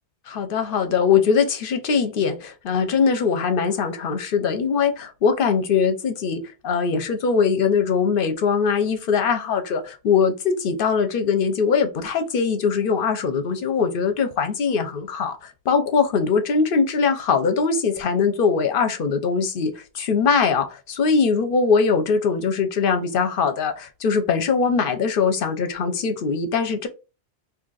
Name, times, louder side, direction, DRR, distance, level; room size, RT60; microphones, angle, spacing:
voice 1, 0.3-26.9, left 5 dB, 60° left, 0.8 m, -21 dB
2.8 x 2.5 x 3.9 m
omnidirectional pair, 1.1 m